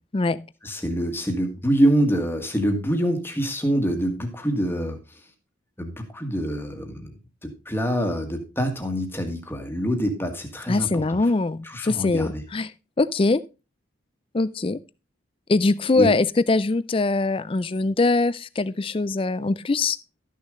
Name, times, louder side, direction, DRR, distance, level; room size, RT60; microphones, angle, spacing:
voice 1, 0.6-5.0 5.8-7.1 7.4-11.2 11.6-12.4 15.9-16.1, equal, 10° left, 1.6 m, -25 dB
voice 2, 10.7-12.7 13.0-13.4 14.3-14.8 15.5-20.0, left 3 dB, 25° left, 0.4 m, -22 dB
12.5 x 6.4 x 3.7 m
head